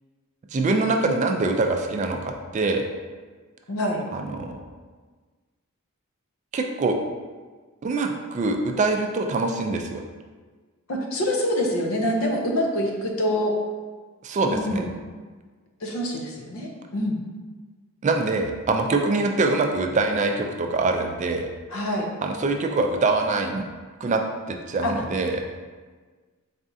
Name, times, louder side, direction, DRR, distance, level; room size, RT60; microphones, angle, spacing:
voice 1, 0.5-2.8 4.1-4.6 6.5-7.0 7.8-10.0 14.2-14.9 18.0-21.5 22.2-23.7 24.0-24.2 24.5-25.4, right 3 dB, 35° right, 4 dB, 0.3 m, -24 dB
voice 2, 3.7-4.0 10.9-13.5 14.5-14.9 15.8-17.2 21.7-22.1 24.8-24.9, equal, 70° left, 1 dB, 0.6 m, -25 dB
4.2 x 3.5 x 2.6 m, 1.4 s
head